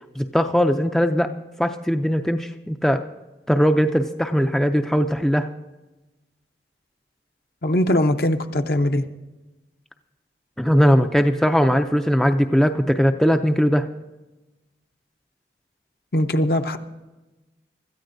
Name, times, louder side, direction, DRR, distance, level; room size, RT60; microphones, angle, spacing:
voice 1, 0.2-1.3 1.6-3.0 3.5-5.5 10.6-13.9, equal, 5° left, 6 dB, 0.4 m, -19 dB
voice 2, 7.6-9.0 16.1-16.8, left 1 dB, 55° left, 8 dB, 0.7 m, -21 dB
25.0 x 13.5 x 2.6 m, 1.1 s
head